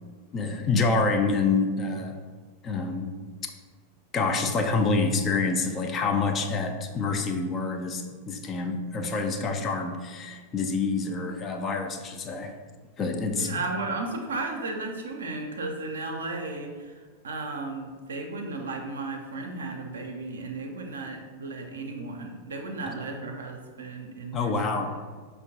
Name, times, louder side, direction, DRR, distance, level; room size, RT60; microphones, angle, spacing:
voice 1, 0.3-2.2 2.6-3.1 4.1-12.5 13.0-13.5 24.3-24.9, left 4 dB, 25° left, 4 dB, 0.3 m, -27 dB
voice 2, 13.3-17.0 17.2-24.5, right 3 dB, 65° right, 3 dB, 0.4 m, -34 dB
5.0 x 2.1 x 2.7 m, 1.5 s
figure-of-eight pair, 90°, 0 cm